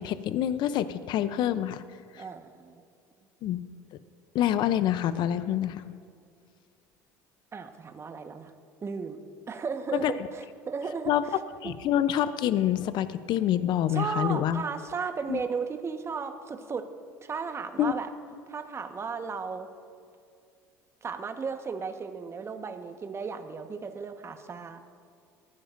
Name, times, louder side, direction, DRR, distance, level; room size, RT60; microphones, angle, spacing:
voice 1, 0.0-1.8 2.1-2.2 3.4-3.6 4.3-5.9 9.9-10.3 11.1-14.6 15.3-15.4 17.8-17.9, left 11 dB, 55° left, 13 dB, 0.6 m, -27 dB
voice 2, 2.2-2.8 7.5-8.5 8.8-9.2 9.5-11.7 13.9-16.9 17.2-18.1 18.5-19.7 21.0-25.0, right 5 dB, 30° right, 6 dB, 1.3 m, -35 dB
22.5 x 15.5 x 2.6 m, 2.2 s
hypercardioid pair, 80°, 9 cm